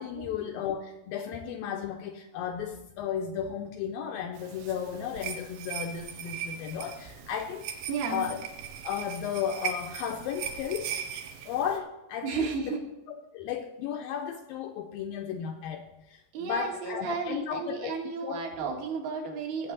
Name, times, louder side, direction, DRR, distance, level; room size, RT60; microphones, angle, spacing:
voice 1, 0.0-7.7 8.1-8.4 8.8-10.9 11.5-12.8 13.1-18.4, left 8 dB, 80° left, 5 dB, 2.1 m, -34 dB
sound 1, 4.4-11.8, right 8 dB, 90° right, 2.9 m, -39 dB
voice 2, 7.9-8.3 12.2-12.8 16.3-19.7, right 5 dB, 70° right, 0 dB, 3.5 m, -33 dB
17.0 x 7.8 x 3.9 m, 0.98 s
omnidirectional pair, 4.6 m